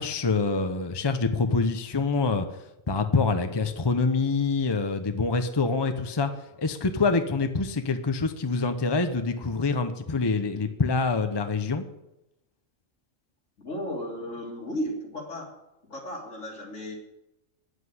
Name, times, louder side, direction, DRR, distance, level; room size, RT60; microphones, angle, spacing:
voice 1, 0.0-2.5 2.9-6.3 6.6-11.8, left 4 dB, 25° left, 8 dB, 0.8 m, -26 dB
voice 2, 13.6-15.6 15.9-16.9, equal, 75° left, -2 dB, 3.4 m, -34 dB
10.0 x 8.1 x 9.6 m, 0.90 s
omnidirectional pair, 1.3 m